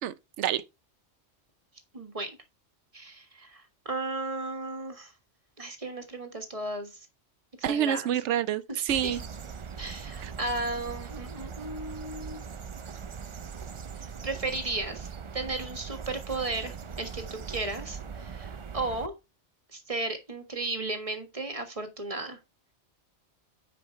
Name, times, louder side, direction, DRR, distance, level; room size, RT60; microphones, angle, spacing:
voice 1, 0.0-0.6 7.6-9.2 10.2-10.3, right 10 dB, 80° right, 1.0 m, -28 dB
voice 2, 1.9-2.4 2.9-5.1 5.6-7.1 7.7-8.1 8.7-9.2 9.8-12.4 13.9-15.1 15.3-19.1 19.7-22.4, right 2 dB, 30° right, 1.6 m, -35 dB
sound 1, 8.9-19.1, right 6 dB, 45° right, 0.4 m, -40 dB
9.4 x 5.0 x 4.6 m
omnidirectional pair, 1.2 m